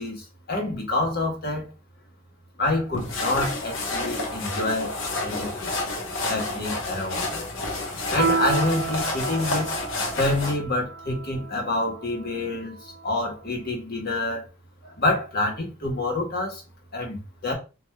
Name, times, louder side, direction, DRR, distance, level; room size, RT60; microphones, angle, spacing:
voice 1, 0.0-1.7 2.6-5.0 5.2-5.7 6.3-7.4 8.0-9.8 10.2-14.4 14.8-16.6 16.9-17.5, left 2 dB, 50° left, 1.3 m, -27 dB
sound 1, 2.9-10.6, left 2 dB, 65° left, 0.9 m, -30 dB
Piano, 8.2-13.1, right 5 dB, 60° right, 0.4 m, -31 dB
6.3 x 2.7 x 2.3 m
head